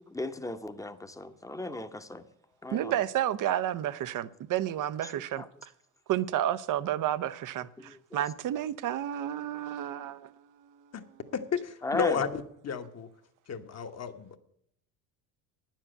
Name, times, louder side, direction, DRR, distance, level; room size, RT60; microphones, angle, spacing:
voice 1, 0.0-2.2 2.6-2.9 5.4-5.5 7.8-8.2 11.8-12.2, left 2 dB, 5° left, 1.0 m, -36 dB
voice 2, 2.7-5.7 6.1-10.9, right 11 dB, 45° right, 0.7 m, -31 dB
voice 3, 11.3-13.1 13.5-14.4, left 6 dB, 35° left, 1.3 m, -32 dB
9.8 x 7.4 x 8.0 m
hypercardioid pair, 75°, 45 cm